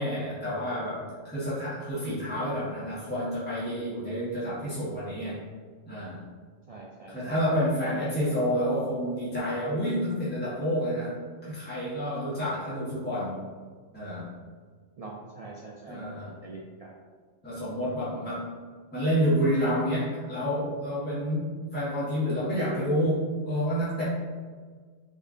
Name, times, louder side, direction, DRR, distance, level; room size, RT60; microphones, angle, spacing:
voice 1, 0.0-5.4 5.9-6.2 7.1-11.1 11.4-13.4 13.9-14.3 15.9-16.3 17.4-18.4 18.9-24.0, equal, 10° left, -10 dB, 1.2 m, -29 dB
voice 2, 6.7-7.4 7.8-8.0 15.0-16.9, right 3 dB, 65° right, -2 dB, 0.3 m, -44 dB
3.7 x 3.2 x 3.7 m, 1.6 s
omnidirectional pair, 1.2 m